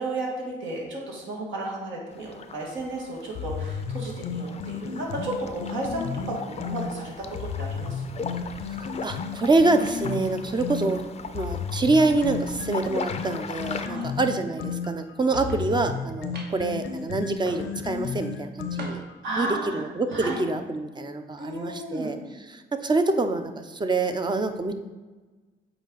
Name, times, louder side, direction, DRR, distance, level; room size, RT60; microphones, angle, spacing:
voice 1, 0.0-8.3 13.8-14.1 19.2-19.8 20.1-20.4 21.4-22.1, right 2 dB, 75° right, -2 dB, 2.0 m, -33 dB
sound 1, 2.1-13.9, left 5 dB, 30° left, 0.5 m, -39 dB
sound 2, 3.4-6.9 7.4-10.9 11.4-19.2, left 6 dB, 80° left, 0.6 m, -33 dB
voice 2, 8.7-11.0 11.3-19.0 19.4-22.2 22.5-24.7, right 3 dB, 20° right, 8 dB, 0.6 m, -26 dB
sound 3, 15.3-15.6 16.3-16.7 17.4-17.9 18.8-19.3 19.9-20.3, right 2 dB, 55° right, 1.3 m, -40 dB
7.9 x 4.3 x 4.0 m, 1.3 s
cardioid pair, 90°, 20 cm